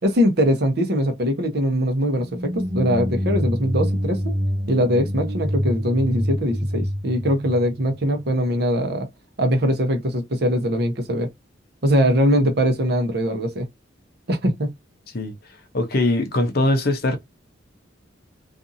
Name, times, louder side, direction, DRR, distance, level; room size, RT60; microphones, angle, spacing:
voice 1, 0.0-4.2 4.7-9.1 9.4-11.3 11.8-13.7 14.3-14.7, equal, 60° right, 0.8 m, -21 dB
sound 1, 2.3-8.2, equal, 85° right, 1.2 m, -26 dB
voice 2, 15.1-17.2, left 2 dB, 55° left, 0.6 m, -22 dB
2.6 x 2.4 x 2.6 m
head